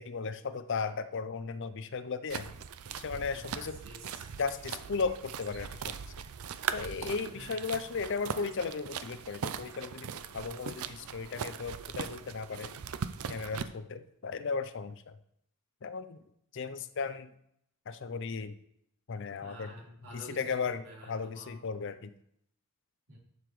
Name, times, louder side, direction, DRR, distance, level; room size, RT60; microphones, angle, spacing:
voice 1, 0.0-2.5 2.9-3.8 4.4-5.7 6.7-10.1 10.3-12.7 13.3-15.1 15.8-16.2 16.5-17.3 17.9-18.5 19.1-19.7 20.1-22.1, left 5 dB, 55° left, 12 dB, 0.5 m, -36 dB
sound 1, 2.3-13.6, right 7 dB, 90° right, 0.5 m, -40 dB
voice 2, 3.2-4.3 7.3-7.8 11.0-11.3 19.4-21.6 23.1-23.2, right 1 dB, 75° right, -4 dB, 4.0 m, -50 dB
11.0 x 7.0 x 3.2 m, 0.72 s
head